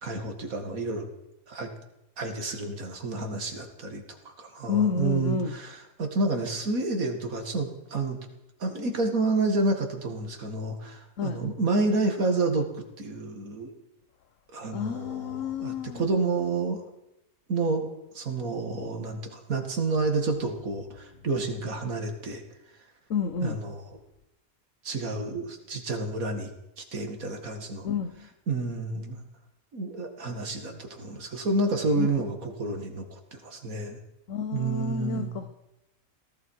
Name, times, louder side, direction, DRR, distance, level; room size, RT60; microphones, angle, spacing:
voice 1, 0.0-1.1 1.5-1.7 2.2-8.2 8.6-12.7 13.0-13.7 14.5-16.8 17.5-22.4 23.4-24.0 24.8-26.5 26.8-27.9 28.5-29.2 29.7-33.1 33.3-34.0 34.5-35.3, right 3 dB, 85° right, 4 dB, 2.4 m, -29 dB
voice 2, 4.7-5.6 11.2-11.4 14.7-16.0 23.1-23.6 27.8-28.3 32.0-32.2 34.3-35.5, left 6 dB, 65° left, 8 dB, 1.4 m, -29 dB
18.0 x 15.5 x 4.7 m, 0.89 s
omnidirectional pair, 1.4 m